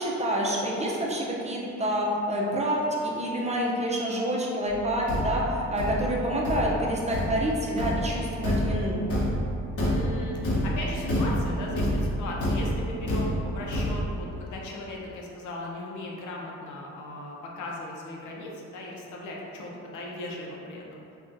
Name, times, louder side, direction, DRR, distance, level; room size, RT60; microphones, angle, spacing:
voice 1, 0.0-9.0, equal, 20° right, -3 dB, 0.6 m, -28 dB
Thump thud, 4.7-14.3, equal, 50° left, 0.9 m, -28 dB
voice 2, 9.9-21.0, left 2 dB, 75° left, -2 dB, 0.7 m, -37 dB
5.2 x 2.4 x 2.6 m, 2.6 s
cardioid pair, 90°, 30 cm